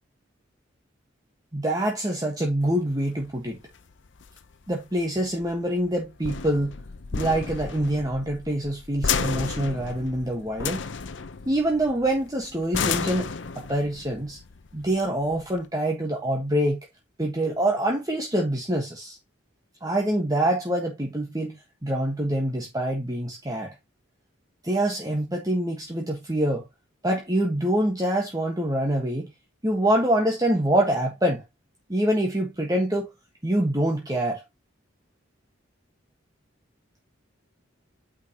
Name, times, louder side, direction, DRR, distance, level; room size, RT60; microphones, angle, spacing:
voice 1, 1.5-3.6 4.7-6.7 7.1-10.8 11.4-13.3 13.5-14.4 14.7-16.8 17.2-19.2 19.8-23.7 24.6-26.6 27.0-29.3 29.6-31.4 31.9-33.1 33.4-34.4, right 1 dB, 20° right, 1.3 m, -25 dB
sound 1, 2.6-15.6, left 6 dB, 65° left, 0.7 m, -33 dB
9.2 x 4.8 x 2.9 m
head